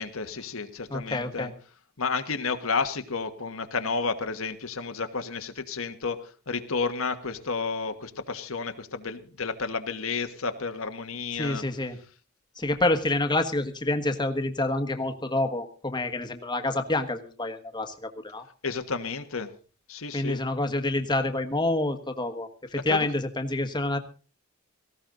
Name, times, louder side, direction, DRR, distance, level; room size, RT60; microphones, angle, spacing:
voice 1, 0.0-1.5 2.0-11.6 18.6-19.5 19.9-20.4 22.9-23.1, left 4 dB, 75° left, 8 dB, 1.4 m, -31 dB
voice 2, 0.9-1.5 11.4-12.0 12.6-18.4 20.1-24.0, left 2 dB, 20° left, 7 dB, 1.5 m, -28 dB
18.0 x 15.5 x 3.9 m, 0.37 s
head